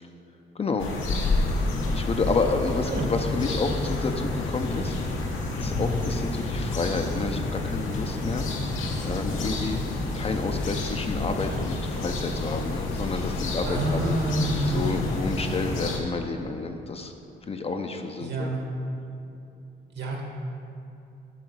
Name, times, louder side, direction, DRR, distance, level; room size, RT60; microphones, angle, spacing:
voice 1, 0.6-0.9 1.9-5.3 5.6-8.5 9.0-9.8 10.1-14.2 14.7-17.1 17.5-18.5, left 4 dB, 30° left, 5 dB, 0.5 m, -30 dB
sound 1, 0.8-16.0, left 2 dB, 80° left, 1.0 m, -29 dB
voice 2, 13.6-15.2 18.2-18.6 19.9-20.2, right 2 dB, 60° right, 0 dB, 1.6 m, -28 dB
8.2 x 3.8 x 6.6 m, 2.7 s
cardioid pair, 90°, 20 cm